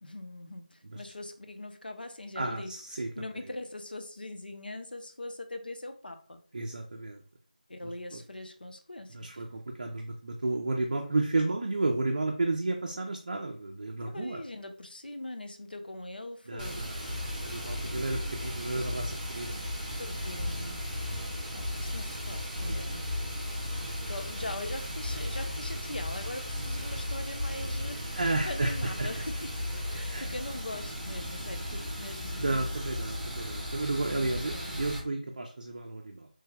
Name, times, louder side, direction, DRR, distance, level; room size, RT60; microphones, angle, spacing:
voice 1, 0.0-6.4 7.7-9.4 14.1-16.9 19.9-21.0 21.5-23.2 24.1-32.7 34.1-34.8, left 2 dB, 85° left, 0.5 m, -42 dB
voice 2, 2.4-3.1 6.5-7.2 7.8-8.2 9.1-14.4 16.5-19.6 22.6-23.0 28.1-29.2 30.1-30.3 32.4-36.3, right 2 dB, 50° right, 0.5 m, -32 dB
Water, 16.6-35.0, left 1 dB, 5° right, 0.9 m, -35 dB
3.3 x 2.2 x 3.2 m
figure-of-eight pair, 170°, 5 cm